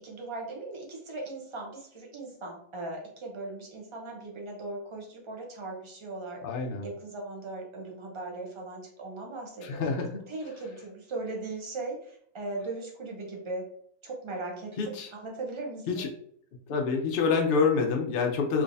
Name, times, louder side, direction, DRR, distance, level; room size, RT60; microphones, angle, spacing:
voice 1, 0.0-6.4 6.8-9.9 10.3-13.6 14.0-16.1, right 2 dB, 35° right, -1 dB, 0.4 m, -38 dB
voice 2, 6.4-6.9 9.6-10.2 14.8-15.1 15.9-16.1 16.7-18.6, left 5 dB, 65° left, 2 dB, 0.5 m, -27 dB
3.4 x 3.0 x 2.6 m, 0.63 s
omnidirectional pair, 1.7 m